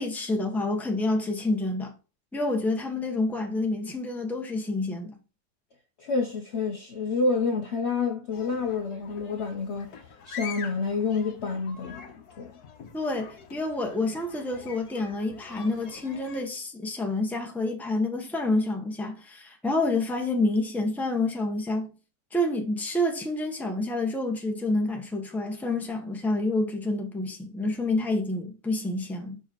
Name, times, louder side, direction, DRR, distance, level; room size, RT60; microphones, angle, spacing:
voice 1, 0.0-1.9 2.3-5.2 12.9-21.9 22.3-29.4, left 2 dB, ahead, 1.0 m, -28 dB
voice 2, 6.0-9.9 10.3-12.5, left 4 dB, 50° left, 0.9 m, -28 dB
sound 1, 8.3-16.4, left 6 dB, 70° left, 1.6 m, -45 dB
5.4 x 4.8 x 4.4 m
omnidirectional pair, 1.7 m